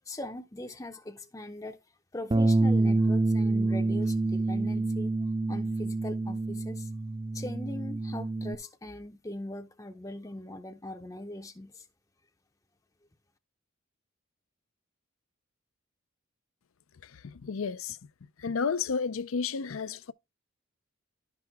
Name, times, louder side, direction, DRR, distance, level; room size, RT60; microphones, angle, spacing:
voice 1, 0.1-1.8 2.1-5.1 5.5-6.9 7.3-11.9, left 1 dB, 15° left, 0.6 m, -41 dB
Bass guitar, 2.3-8.6, right 2 dB, 25° right, 0.4 m, -27 dB
voice 2, 17.0-18.0 18.4-20.1, left 5 dB, 75° left, 0.5 m, -32 dB
11.5 x 6.0 x 3.5 m
head